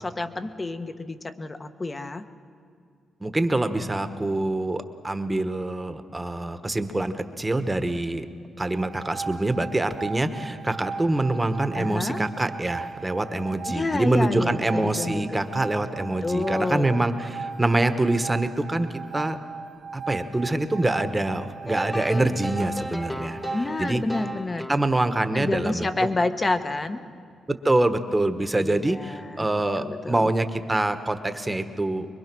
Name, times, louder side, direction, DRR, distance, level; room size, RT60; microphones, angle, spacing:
voice 1, 0.0-2.2 11.7-12.2 13.7-15.4 16.2-17.0 23.5-24.7 25.3-27.0 28.6-29.5 29.8-30.2, left 2 dB, 25° left, 9 dB, 1.2 m, -29 dB
voice 2, 3.2-8.3 8.6-18.9 19.1-19.4 19.9-24.0 24.7-25.9 27.6-32.1, right 2 dB, 15° right, 9 dB, 1.3 m, -25 dB
sound 1, 8.6-24.4, right 5 dB, 45° right, 1.0 m, -38 dB
sound 2, 21.7-25.5, left 1 dB, 10° left, 0.7 m, -35 dB
24.5 x 22.0 x 6.2 m, 2.2 s
cardioid pair, 75°, 0 cm